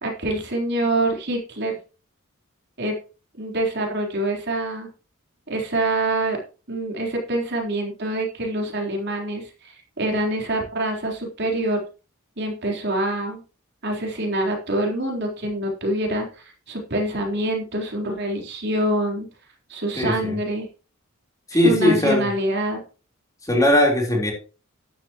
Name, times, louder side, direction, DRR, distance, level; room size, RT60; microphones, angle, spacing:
voice 1, 0.0-1.7 2.8-3.0 3.4-4.9 5.5-6.4 6.7-9.7 10.0-11.8 12.4-13.4 13.8-19.3 19.7-20.7 21.5-22.8, right 1 dB, 50° right, 0 dB, 3.8 m, -25 dB
voice 2, 20.0-20.4 21.5-22.3 23.5-24.3, left 1 dB, 15° left, -1 dB, 3.8 m, -19 dB
12.5 x 11.0 x 3.0 m, 0.34 s
head